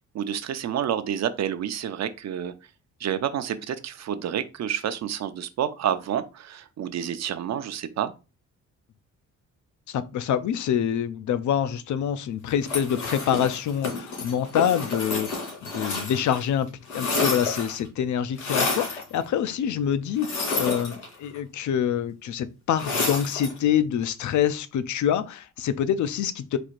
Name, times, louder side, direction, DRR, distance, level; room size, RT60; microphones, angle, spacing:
voice 1, 0.1-2.5 3.0-8.1, right 9 dB, 60° right, 0.6 m, -29 dB
voice 2, 9.9-26.6, left 9 dB, 70° left, 0.5 m, -26 dB
sound 1, 12.6-16.4 16.7-17.9 18.4-19.0 20.2-21.4 22.8-23.6, left 3 dB, 85° left, 2.6 m, -29 dB
4.6 x 4.2 x 2.5 m
cardioid pair, 105°, 31 cm